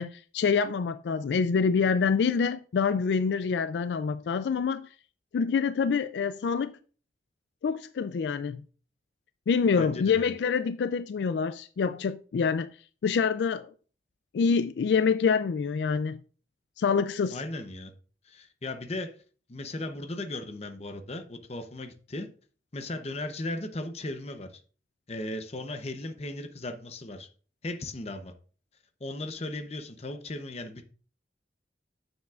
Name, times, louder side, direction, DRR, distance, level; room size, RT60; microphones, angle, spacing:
voice 1, 0.0-4.9 5.3-6.8 7.6-8.6 9.5-12.7 13.0-13.7 14.3-16.2 16.8-17.4, left 5 dB, 75° left, 0.3 m, -26 dB
voice 2, 9.7-10.3 17.3-17.9 18.2-19.2 19.5-22.3 22.7-24.6 25.1-27.3 27.6-28.3 29.0-30.8, left 2 dB, 35° left, 0.8 m, -37 dB
9.3 x 7.1 x 2.4 m
head